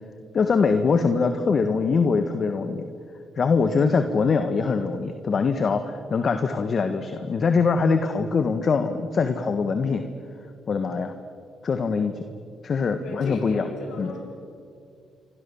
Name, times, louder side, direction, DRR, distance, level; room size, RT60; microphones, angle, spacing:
voice 1, 0.3-2.8 3.4-10.0 10.7-11.1 11.6-12.2 12.6-13.7 14.0-14.1, left 5 dB, 45° left, 8 dB, 1.6 m, -23 dB
voice 2, 13.0-14.4, left 3 dB, 70° left, 1 dB, 4.9 m, -36 dB
28.5 x 25.0 x 7.2 m, 2.4 s
cardioid pair, 90°, 0 cm